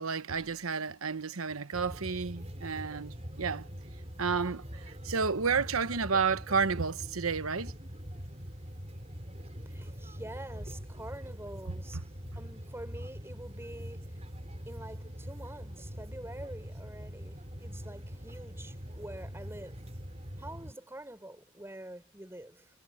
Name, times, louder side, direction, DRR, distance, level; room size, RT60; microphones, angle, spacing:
voice 1, 0.0-3.7 4.2-7.7, right 5 dB, 80° right, 1.1 m, -31 dB
sound 1, 1.7-20.7, equal, 30° right, 5.0 m, -43 dB
voice 2, 9.6-12.0 12.3-14.1 14.7-19.9 20.4-22.7, right 1 dB, 10° right, 4.5 m, -46 dB
head